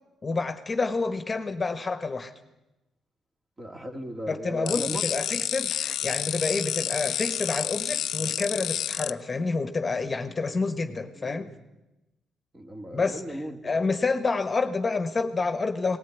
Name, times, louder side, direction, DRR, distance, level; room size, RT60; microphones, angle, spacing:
voice 1, 0.2-2.3 4.3-11.5 12.9-16.0, left 4 dB, 25° left, 9 dB, 1.4 m, -28 dB
voice 2, 3.6-5.0 11.2-11.5 12.5-13.6, equal, 20° right, 4 dB, 2.6 m, -36 dB
sound 1, 4.7-9.1, left 10 dB, 70° left, 0.7 m, -29 dB
18.5 x 18.0 x 9.3 m, 0.99 s
cardioid pair, 90°, 0 cm